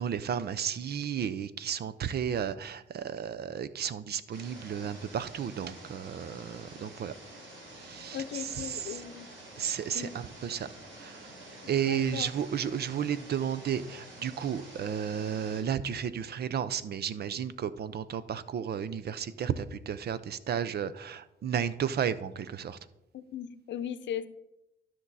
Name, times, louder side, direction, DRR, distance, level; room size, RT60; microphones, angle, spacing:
voice 1, 0.0-7.1 7.7-9.0 9.6-10.7 11.0-22.8, right 8 dB, 55° right, 16 dB, 0.6 m, -33 dB
sound 1, 4.3-15.6, right 1 dB, 70° right, 2.9 m, -48 dB
voice 2, 8.1-9.3 9.9-10.1 11.9-12.3 23.1-24.3, left 9 dB, 70° left, 12 dB, 0.7 m, -37 dB
12.5 x 6.1 x 4.1 m, 0.87 s
cardioid pair, 90°, 20 cm